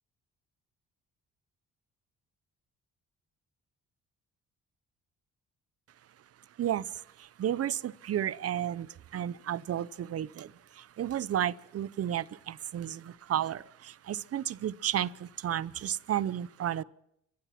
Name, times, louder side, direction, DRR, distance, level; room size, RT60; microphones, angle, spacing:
voice 1, 6.6-16.8, right 11 dB, 55° right, 0.7 m, -33 dB
30.0 x 15.5 x 5.9 m
cardioid pair, 90°, 30 cm